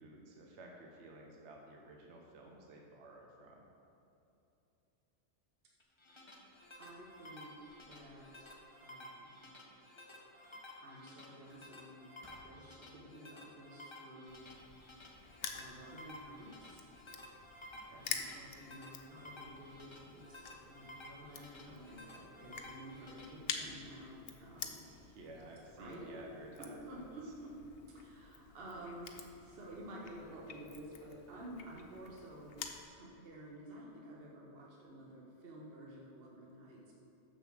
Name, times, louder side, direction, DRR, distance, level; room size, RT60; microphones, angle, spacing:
voice 1, 0.0-3.7 17.8-18.1 24.7-27.1, right 2 dB, 70° right, 0 dB, 1.2 m, -54 dB
sound 1, 5.8-23.3, left 1 dB, 25° left, 1.0 m, -54 dB
Squeak, 6.3-9.9 10.4-11.9 12.2-12.8, left 1 dB, 10° right, 1.7 m, -67 dB
voice 2, 6.8-9.4 10.8-12.1 12.4-14.5 15.5-16.9 17.9-25.0 25.3-25.4 25.8-26.2 26.6-27.6 27.9-32.6 32.9-36.9, right 1 dB, 55° right, -3 dB, 1.4 m, -51 dB
Crushing, 14.3-32.8, left 6 dB, 60° left, 0.9 m, -49 dB
7.0 x 7.0 x 6.1 m, 2.9 s
omnidirectional pair, 1.2 m